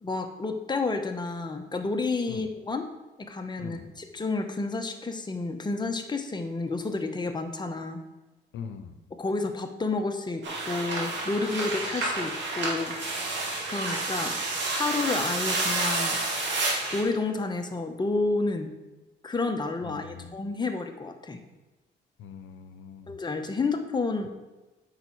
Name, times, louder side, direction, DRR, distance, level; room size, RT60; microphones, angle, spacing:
voice 1, 0.0-2.9 3.2-8.0 9.2-12.9 13.7-14.3 14.7-16.2 16.9-18.7 19.2-21.4 23.1-24.3, left 3 dB, 20° left, 5 dB, 1.0 m, -30 dB
voice 2, 8.5-8.9 19.8-20.3 22.2-23.1, left 7 dB, 85° left, 8 dB, 0.8 m, -41 dB
sound 1, 10.4-17.0, right 2 dB, 65° right, 2.3 m, -30 dB
8.1 x 5.8 x 4.6 m, 1.1 s
cardioid pair, 90°, 20 cm